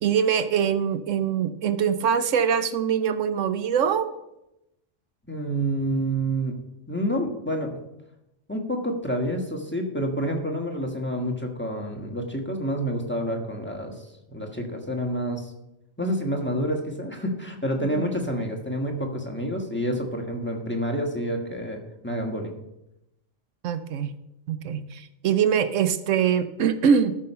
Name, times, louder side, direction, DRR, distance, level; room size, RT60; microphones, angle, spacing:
voice 1, 0.0-4.1 17.8-18.1 23.6-24.1 24.5-27.2, right 7 dB, 80° right, 12 dB, 1.0 m, -23 dB
voice 2, 5.3-6.6 6.9-7.8 8.5-14.1 14.3-15.5 16.0-22.5, equal, 10° left, 2 dB, 1.4 m, -28 dB
13.5 x 6.3 x 5.6 m, 0.89 s
omnidirectional pair, 1.3 m